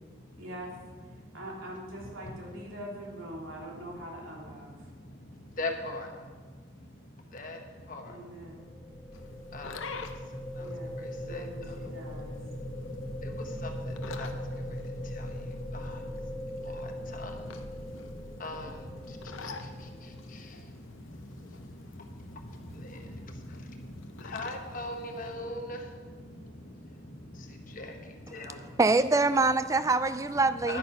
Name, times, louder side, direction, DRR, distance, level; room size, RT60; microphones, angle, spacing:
voice 1, 0.4-0.7 1.3-4.9 8.0-8.6 10.6-12.4, right 1 dB, 90° right, 2.8 m, -43 dB
voice 2, 4.6-28.8 30.6-30.8, left 1 dB, 40° left, 1.1 m, -42 dB
sound 1, 8.2-20.4, equal, 15° left, 3.5 m, -40 dB
sound 2, 9.1-25.3, left 4 dB, 80° left, 0.7 m, -48 dB
voice 3, 28.8-30.8, right 3 dB, 15° right, 0.3 m, -24 dB
10.5 x 8.9 x 5.5 m
head